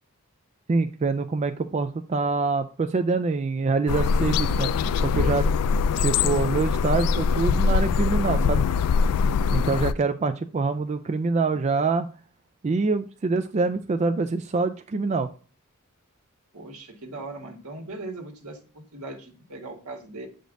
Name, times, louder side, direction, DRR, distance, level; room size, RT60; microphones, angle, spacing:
voice 1, 0.7-4.7 5.0-5.5 6.0-8.6 9.5-12.1 12.6-15.3, right 4 dB, 30° right, 8 dB, 0.3 m, -25 dB
sound 1, 3.9-9.9, left 5 dB, 85° left, 0.3 m, -22 dB
voice 2, 16.5-20.3, right 2 dB, 70° right, 2 dB, 1.7 m, -39 dB
7.7 x 5.1 x 2.6 m, 0.38 s
head